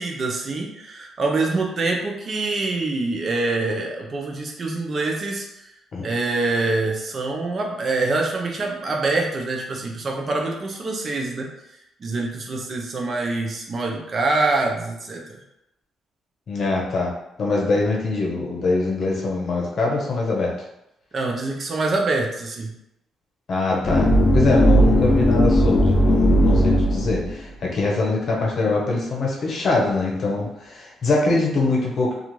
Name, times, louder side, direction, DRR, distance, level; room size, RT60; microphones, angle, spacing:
voice 1, 0.0-5.5 6.0-11.5 12.0-15.2 21.1-22.7, right 3 dB, 45° right, 0 dB, 0.5 m, -25 dB
voice 2, 16.5-17.1 17.4-20.5 23.5-32.1, left 3 dB, 55° left, -3 dB, 0.8 m, -23 dB
sound 1, 23.8-27.3, equal, 25° left, 0.5 m, -17 dB
2.4 x 2.4 x 3.0 m, 0.86 s
cardioid pair, 90°, 0 cm